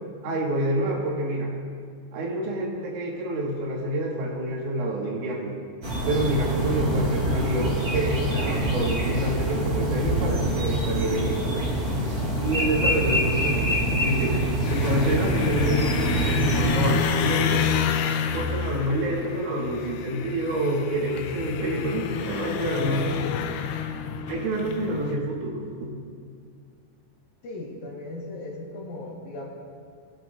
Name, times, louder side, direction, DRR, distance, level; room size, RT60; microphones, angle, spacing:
voice 1, 0.2-1.5 2.1-5.6 6.1-11.7 12.3-14.5 14.7-17.7 18.3-23.1 24.3-25.9, right 1 dB, 85° right, -2 dB, 3.9 m, -28 dB
sound 1, 5.8-16.7, right 1 dB, 35° right, 2.5 m, -25 dB
sound 2, 14.6-25.2, left 7 dB, 85° left, 2.4 m, -29 dB
voice 2, 27.4-29.5, left 2 dB, 65° left, -3 dB, 2.1 m, -37 dB
22.5 x 8.7 x 2.5 m, 2.2 s
omnidirectional pair, 5.3 m